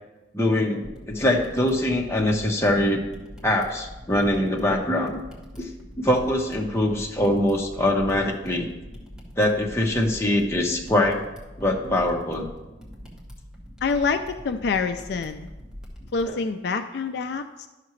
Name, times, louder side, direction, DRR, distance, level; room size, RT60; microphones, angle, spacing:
voice 1, 0.3-3.0 3.4-5.2 5.6-5.7 6.0-8.7 9.4-11.2 11.6-12.5 16.3-16.4, left 1 dB, 15° left, 0 dB, 0.9 m, -23 dB
sound 1, 0.8-16.3, equal, 5° right, 1.1 m, -43 dB
voice 2, 13.8-15.5 16.1-17.7, left 4 dB, 60° left, 8 dB, 0.3 m, -26 dB
12.0 x 5.7 x 3.1 m, 1.1 s
head